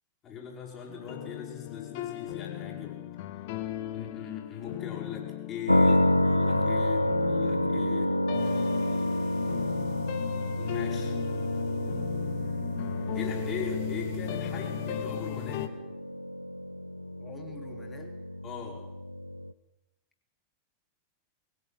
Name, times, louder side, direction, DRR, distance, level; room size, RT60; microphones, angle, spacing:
voice 1, 0.2-3.0 3.9-8.1 10.6-11.1 13.1-15.7 18.4-18.8, left 7 dB, 35° left, -3 dB, 6.7 m, -40 dB
sound 1, 0.9-15.7, left 12 dB, 50° left, 1.8 m, -37 dB
sound 2, 5.7-19.5, left 1 dB, 85° left, 0.8 m, -29 dB
voice 2, 17.2-18.2, left 4 dB, 15° left, 3 dB, 3.9 m, -47 dB
22.0 x 17.0 x 9.7 m, 0.95 s
figure-of-eight pair, 90°, 0 cm